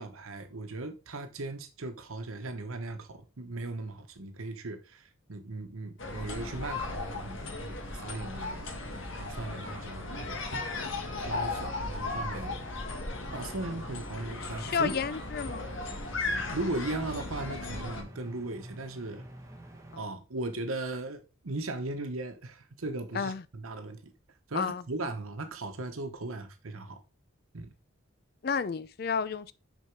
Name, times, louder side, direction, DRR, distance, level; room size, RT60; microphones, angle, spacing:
voice 1, 0.0-8.7 9.2-10.4 11.2-12.6 13.3-14.9 16.2-19.2 20.0-24.1 24.5-27.0 27.5-27.7, right 2 dB, 85° right, 1.0 m, -38 dB
sound 1, 6.0-18.0, left 2 dB, 65° left, 1.5 m, -36 dB
sound 2, 8.3-20.0, right 1 dB, 15° right, 1.3 m, -52 dB
voice 2, 14.4-15.7 19.9-20.0 23.1-23.4 24.5-24.8 28.4-29.5, left 6 dB, 45° left, 0.4 m, -32 dB
6.7 x 4.5 x 4.6 m
head